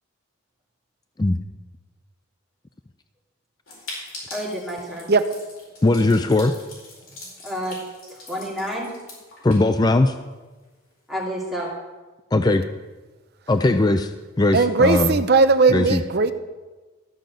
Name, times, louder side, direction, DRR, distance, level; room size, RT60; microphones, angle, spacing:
sound 1, 3.7-10.3 10.6-10.7 10.9-11.0 11.4-11.7, left 2 dB, 70° left, 4.5 m, -42 dB
voice 1, 4.3-5.1 7.2-7.8 8.1-8.9 11.1-11.7, equal, ahead, -7 dB, 2.7 m, -30 dB
voice 2, 5.8-6.6 9.4-10.1 12.3-12.6 13.5-14.1 14.4-15.2 15.7-16.0, left 2 dB, 20° left, 8 dB, 0.3 m, -19 dB
voice 3, 14.5-16.3, right 4 dB, 45° right, 10 dB, 0.6 m, -17 dB
13.5 x 5.2 x 7.5 m, 1.2 s
head